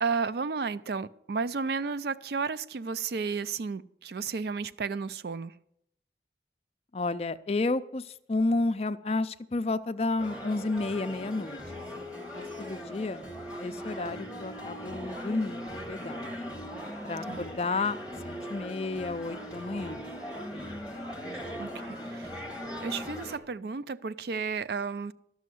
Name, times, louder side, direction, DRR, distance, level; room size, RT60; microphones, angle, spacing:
voice 1, 0.0-5.5 17.3-17.5 21.6-22.3 22.8-25.1, right 5 dB, 65° right, 0.4 m, -32 dB
voice 2, 6.9-11.6 12.0-13.3 13.6-16.3 17.0-18.0 18.2-20.1 20.5-20.8 21.2-22.1, left 3 dB, 35° left, 0.4 m, -32 dB
sound 1, 10.2-23.4, equal, 5° right, 1.7 m, -39 dB
12.5 x 6.3 x 9.2 m
head